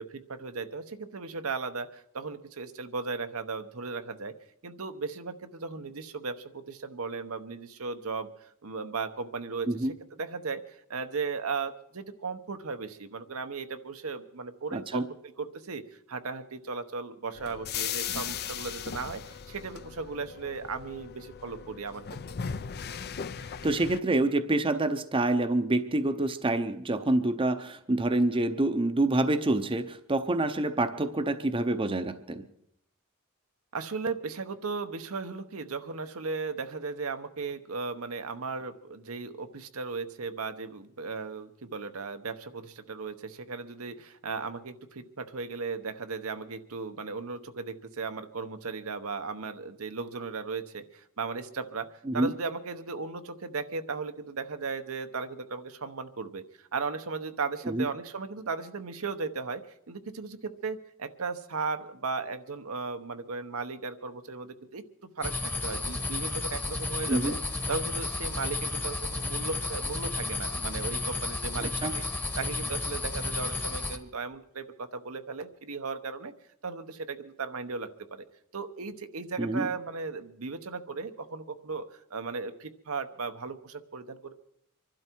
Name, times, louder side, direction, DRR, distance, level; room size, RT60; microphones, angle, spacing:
voice 1, 0.0-4.3 4.6-9.9 10.2-22.3 28.3-28.5 33.7-64.8 65.2-67.4 67.7-72.0 72.4-76.3 76.6-78.2 78.5-84.3, right 4 dB, 80° right, 8 dB, 1.0 m, -36 dB
voice 2, 14.7-15.0 23.6-32.4 52.1-52.3 57.7-57.9 67.1-67.4 71.6-71.9 79.4-79.7, right 2 dB, 25° right, 9 dB, 0.7 m, -27 dB
sound 1, 17.4-24.0, left 7 dB, 50° left, 0.6 m, -38 dB
sound 2, 65.2-74.0, left 3 dB, 10° left, 1.1 m, -32 dB
25.0 x 12.0 x 4.5 m, 0.74 s
head